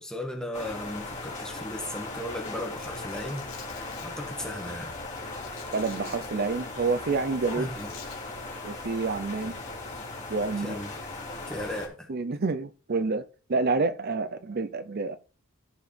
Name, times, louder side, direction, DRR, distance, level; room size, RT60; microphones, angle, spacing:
voice 1, 0.0-3.5 4.0-4.9 7.5-7.9 10.6-10.9 11.5-12.1, left 1 dB, 5° left, 1.6 m, -36 dB
sound 1, 0.5-11.9, left 2 dB, 30° left, 3.0 m, -38 dB
Domestic sounds home sounds, 2.8-4.1 5.2-6.3 7.6-8.2 9.5-9.7 10.6-10.9, left 8 dB, 65° left, 2.1 m, -48 dB
voice 2, 5.7-7.7 8.6-9.6 10.3-10.8 12.1-13.2 13.5-15.2, right 3 dB, 45° right, 0.6 m, -28 dB
14.0 x 5.0 x 3.4 m
head